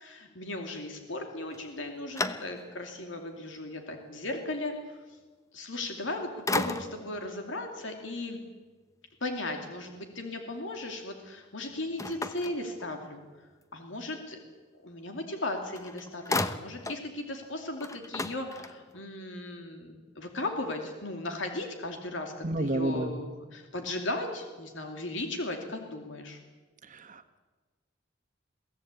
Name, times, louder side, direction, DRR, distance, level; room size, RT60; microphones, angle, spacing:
voice 1, 0.0-5.0 5.5-8.4 9.2-13.2 13.7-14.4 14.8-26.4, left 2 dB, 70° left, 4 dB, 2.7 m, -36 dB
sound 1, 1.5-2.9 3.5-3.6 5.8-6.1 6.5-7.2 12.0-13.3 15.4-15.5 15.7-17.1 17.4-17.5 17.8-19.0, left 2 dB, 15° left, 0.9 m, -34 dB
voice 2, 22.4-23.1 26.9-27.4, right 1 dB, 45° right, 9 dB, 1.5 m, -31 dB
23.0 x 16.5 x 8.4 m, 1.3 s
head